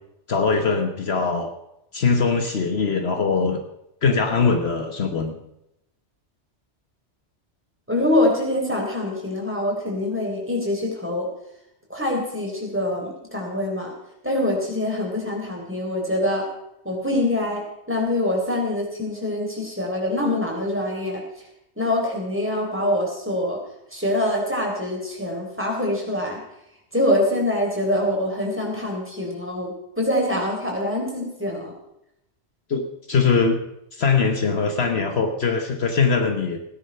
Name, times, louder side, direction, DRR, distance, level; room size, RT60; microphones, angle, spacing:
voice 1, 0.3-1.5 1.9-3.6 4.0-5.4 32.7-33.6 33.9-36.6, left 5 dB, 60° left, 5 dB, 1.4 m, -21 dB
voice 2, 7.9-11.3 11.9-13.9 14.2-16.4 16.8-17.6 17.9-21.2 21.8-23.6 23.9-26.4 26.9-31.7, left 1 dB, 10° right, -1 dB, 4.1 m, -24 dB
17.0 x 10.0 x 5.6 m, 0.83 s
omnidirectional pair, 1.2 m